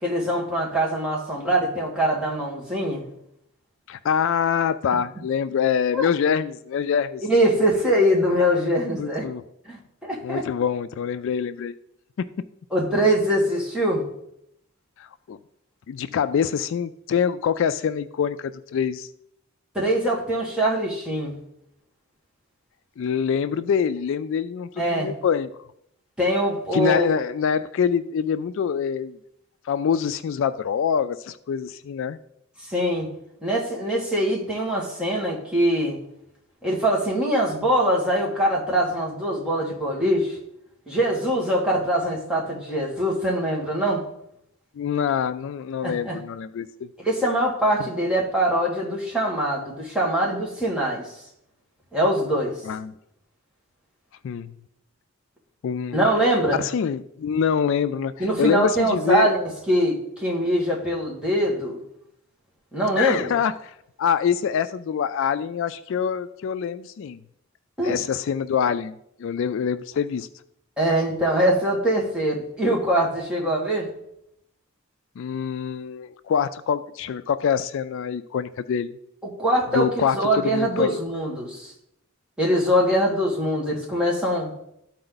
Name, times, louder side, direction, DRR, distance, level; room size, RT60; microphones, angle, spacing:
voice 1, 0.0-3.0 5.9-6.1 7.2-9.2 9.7-10.4 12.7-14.0 19.8-21.3 24.8-25.1 26.2-27.1 32.7-33.1 33.4-36.0 36.6-40.4 40.9-44.0 45.8-46.2 47.0-51.1 51.9-52.6 55.9-56.6 58.2-61.8 62.7-63.3 67.8-68.0 70.8-73.9 79.2-79.9 80.2-81.7 82.4-84.5, equal, 5° right, -3 dB, 1.8 m, -23 dB
voice 2, 3.9-7.2 9.0-9.4 10.2-11.7 15.0-15.4 15.9-19.1 23.0-25.5 26.7-29.2 29.7-32.2 44.8-46.7 52.6-52.9 54.2-54.5 55.6-56.0 56.5-59.3 63.0-67.2 67.8-68.9 69.2-70.3 75.2-78.9 79.7-80.2 80.4-81.0, left 7 dB, 65° left, 13 dB, 0.3 m, -25 dB
13.0 x 4.4 x 3.9 m, 0.76 s
head